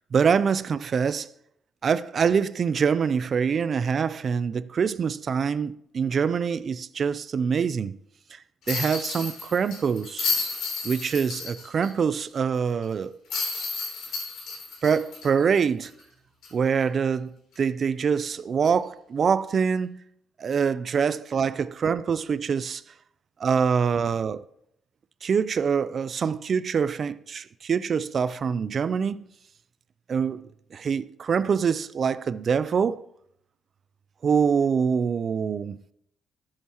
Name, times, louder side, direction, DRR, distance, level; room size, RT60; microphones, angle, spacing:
voice 1, 0.1-1.3 1.8-8.0 8.3-8.4 8.7-10.3 10.8-13.1 14.8-15.9 16.5-19.9 20.4-22.8 23.4-24.4 25.2-29.2 30.1-30.4 30.7-33.0 34.2-35.8, right 6 dB, 50° right, 0.4 m, -25 dB
sound 1, 8.7-11.9 12.2-12.3 13.3-16.0 16.4-16.5 18.6-18.8, left 5 dB, 85° left, 3.3 m, -32 dB
12.5 x 8.6 x 3.0 m
cardioid pair, 90°, 0 cm